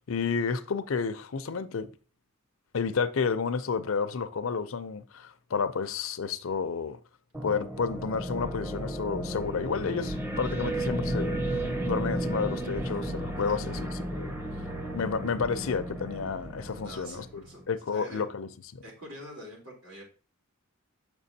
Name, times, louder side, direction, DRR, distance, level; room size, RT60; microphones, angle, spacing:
voice 1, 0.1-1.9 2.7-7.0 7.4-14.3 14.9-18.5, left 5 dB, 80° left, 0.5 m, -31 dB
sound 1, 7.3-17.5, right 1 dB, 10° right, 0.7 m, -33 dB
voice 2, 16.7-17.6 17.9-18.2 18.8-20.0, equal, 80° right, 3.2 m, -46 dB
7.1 x 6.1 x 2.7 m
head